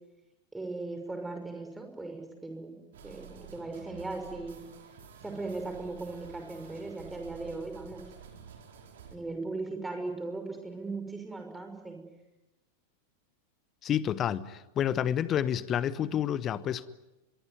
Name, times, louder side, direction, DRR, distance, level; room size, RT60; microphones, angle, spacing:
voice 1, 0.5-2.7 3.0-4.6 5.2-8.1 9.1-12.0, right 3 dB, 5° right, 5.9 m, -38 dB
sound 1, 2.9-9.2, right 7 dB, 60° right, 4.6 m, -50 dB
voice 2, 13.8-16.9, left 10 dB, 30° left, 1.1 m, -29 dB
24.5 x 22.0 x 9.5 m
figure-of-eight pair, 90°, 0 cm